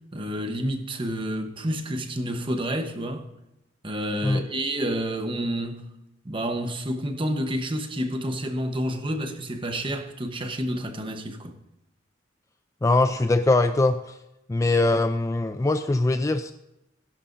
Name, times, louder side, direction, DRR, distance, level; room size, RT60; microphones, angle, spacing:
voice 1, 0.1-3.3 3.8-5.9 6.2-11.6, equal, 25° right, 1.0 m, -29 dB
voice 2, 12.8-14.0 14.5-16.5, left 2 dB, 15° left, 0.3 m, -22 dB
16.5 x 11.0 x 2.6 m
head